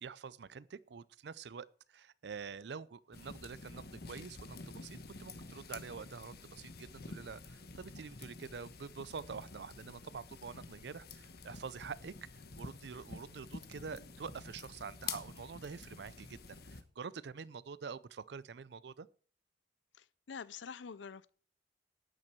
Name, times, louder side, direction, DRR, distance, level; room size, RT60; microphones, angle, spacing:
voice 1, 0.0-19.1, right 5 dB, 65° right, 0.5 m, -47 dB
sound 1, 3.1-16.8, left 4 dB, 60° left, 1.2 m, -49 dB
voice 2, 20.0-21.3, left 6 dB, 90° left, 0.6 m, -47 dB
12.5 x 8.9 x 4.5 m
head